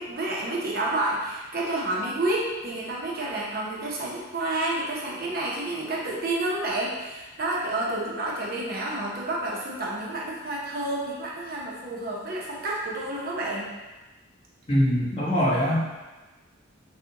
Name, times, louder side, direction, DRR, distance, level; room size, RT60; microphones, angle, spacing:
voice 1, 0.0-13.7, right 2 dB, 50° right, -3 dB, 0.9 m, -29 dB
voice 2, 14.7-15.9, equal, 30° left, -8 dB, 1.3 m, -23 dB
6.1 x 2.4 x 2.9 m, 1.2 s
head